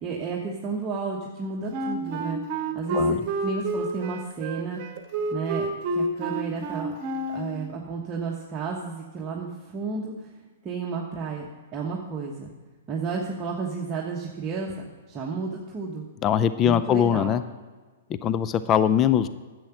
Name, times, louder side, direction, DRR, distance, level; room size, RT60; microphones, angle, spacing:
voice 1, 0.0-2.4 2.7-4.8 5.3-6.9 7.3-10.3 10.6-11.4 11.7-12.5 12.9-16.0 16.6-17.4, right 4 dB, 25° right, -2 dB, 1.2 m, -32 dB
Wind instrument woodwind instrument, 1.7-7.6, right 2 dB, 40° right, 1.3 m, -29 dB
voice 2, 16.2-17.4 18.2-19.3, left 9 dB, 30° left, 13 dB, 0.4 m, -21 dB
10.5 x 7.8 x 5.9 m, 1.4 s
hypercardioid pair, 125°, 0 cm